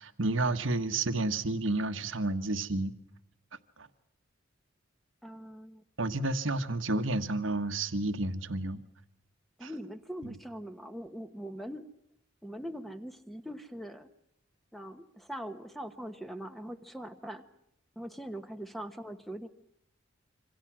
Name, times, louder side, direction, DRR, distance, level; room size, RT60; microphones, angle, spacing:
voice 1, 0.0-2.9 3.8-3.9 6.0-8.8 9.6-9.7, right 2 dB, 75° right, 1.5 m, -30 dB
voice 2, 5.2-5.8 9.6-11.8 12.4-14.1 14.7-17.4 17.9-19.5, equal, ahead, 1.1 m, -42 dB
27.0 x 25.5 x 6.2 m
head